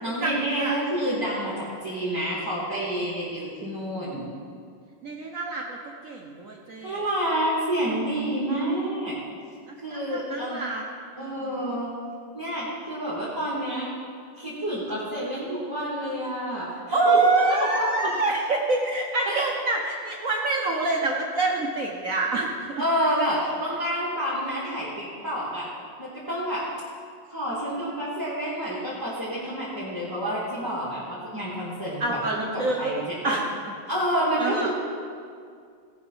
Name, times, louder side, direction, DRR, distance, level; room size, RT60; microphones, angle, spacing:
voice 1, 0.0-4.3 6.8-9.1 9.8-10.6 11.2-12.0 12.3-13.9 14.4-17.2 17.7-18.1 19.3-19.5 22.8-25.7 26.0-26.7 27.3-33.0 33.2-33.4 33.9-34.7, right 1 dB, 10° right, -8 dB, 1.9 m, -28 dB
voice 2, 5.0-5.8 6.0-7.0 9.9-10.8 11.2-11.5 16.9-22.8 32.0-33.4 34.4-34.7, right 3 dB, 55° right, 0 dB, 1.0 m, -26 dB
17.5 x 6.1 x 5.6 m, 2.2 s
omnidirectional pair, 2.4 m